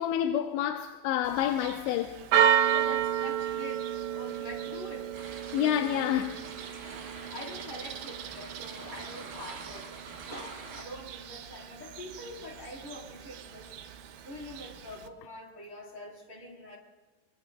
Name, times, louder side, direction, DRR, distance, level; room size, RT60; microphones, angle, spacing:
voice 1, 0.0-2.2 5.5-6.4, left 10 dB, 85° left, 3.0 m, -28 dB
Church bell, 1.3-15.1, right 9 dB, 90° right, 3.5 m, -33 dB
voice 2, 2.7-5.3 5.9-6.1 6.6-6.9 7.3-9.9 10.2-13.8 14.2-16.8, left 1 dB, 30° left, 4.1 m, -45 dB
sound 1, 5.1-10.9, right 5 dB, 60° right, 4.2 m, -45 dB
25.5 x 25.0 x 2.2 m
omnidirectional pair, 5.1 m